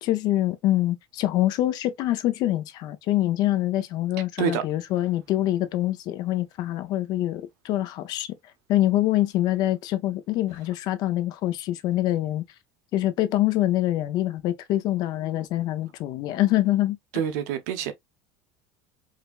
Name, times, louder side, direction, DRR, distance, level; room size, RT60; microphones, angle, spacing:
voice 1, 0.0-8.3 8.7-12.4 12.9-17.0, left 14 dB, 50° left, 0.5 m, -25 dB
voice 2, 17.1-17.9, right 9 dB, 80° right, 0.9 m, -27 dB
4.9 x 2.2 x 2.4 m
cardioid pair, 145°, 9 cm